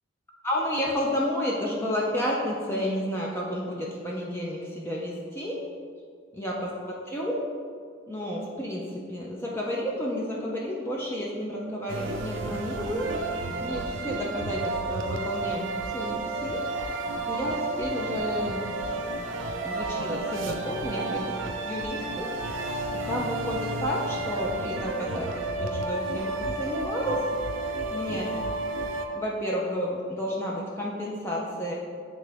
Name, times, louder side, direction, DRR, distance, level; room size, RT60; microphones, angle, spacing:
voice 1, 0.4-5.6 6.3-7.4 8.1-13.1 13.6-16.6 17.3-18.6 19.6-22.3 22.9-27.2 27.9-28.3 29.1-31.7, equal, 10° left, -3 dB, 0.5 m, -31 dB
sound 1, 11.9-29.1, right 2 dB, 70° right, 0.5 m, -31 dB
8.6 x 3.7 x 3.4 m, 2.1 s
head